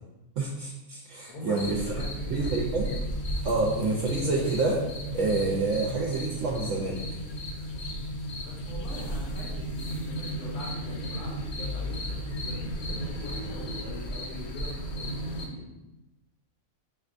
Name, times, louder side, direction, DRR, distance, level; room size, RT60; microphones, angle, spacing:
voice 1, 0.4-1.8 2.3-2.9 3.4-4.8 5.1-7.0, right 3 dB, 65° right, -3 dB, 0.8 m, -28 dB
voice 2, 1.3-2.6 8.4-15.6, left 1 dB, 85° left, -5 dB, 1.3 m, -42 dB
sound 1, 1.6-15.5, equal, 60° left, 0.7 m, -34 dB
6.5 x 2.2 x 2.5 m, 1.0 s
omnidirectional pair, 1.6 m